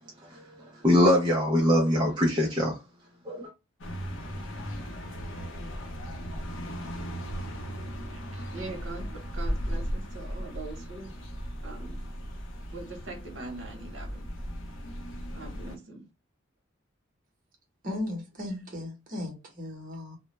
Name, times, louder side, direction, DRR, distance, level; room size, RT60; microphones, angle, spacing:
voice 1, 0.8-2.8 3.3-3.5, left 1 dB, 20° right, 0.4 m, -22 dB
sound 1, 3.8-15.8, equal, 65° left, 0.6 m, -36 dB
voice 2, 8.1-9.1 9.3-11.1 11.6-12.0 12.7-14.2 15.3-16.0, right 3 dB, 70° right, 0.8 m, -42 dB
voice 3, 17.8-20.2, left 1 dB, 40° right, 0.8 m, -36 dB
2.2 x 2.0 x 2.9 m
head